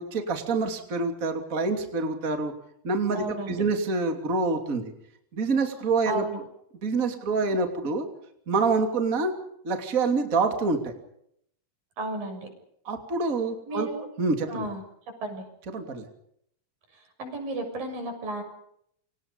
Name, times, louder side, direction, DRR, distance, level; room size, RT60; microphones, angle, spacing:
voice 1, 0.0-2.5 2.8-4.9 5.3-6.2 6.8-8.0 8.5-9.3 9.6-10.9 12.9-13.9 14.2-14.7 15.7-16.0, right 3 dB, 25° right, 5 dB, 3.0 m, -26 dB
voice 2, 3.1-3.6 6.1-6.4 12.0-12.5 13.7-14.1 14.5-14.8 15.2-15.4 16.9-18.4, right 2 dB, 80° right, 5 dB, 8.5 m, -33 dB
29.0 x 26.0 x 5.4 m, 0.71 s
omnidirectional pair, 4.0 m